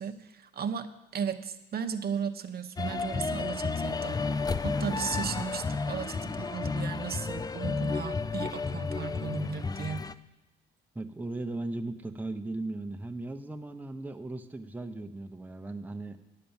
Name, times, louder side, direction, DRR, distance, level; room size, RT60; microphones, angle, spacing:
voice 1, 0.0-4.2 4.6-10.1, right 7 dB, 50° right, 7 dB, 0.8 m, -36 dB
sound 1, 2.8-10.1, left 4 dB, 20° left, 0.4 m, -32 dB
voice 2, 10.9-16.2, right 2 dB, 10° right, 5 dB, 0.8 m, -37 dB
10.5 x 7.7 x 7.1 m, 0.96 s
cardioid pair, 90°, 20 cm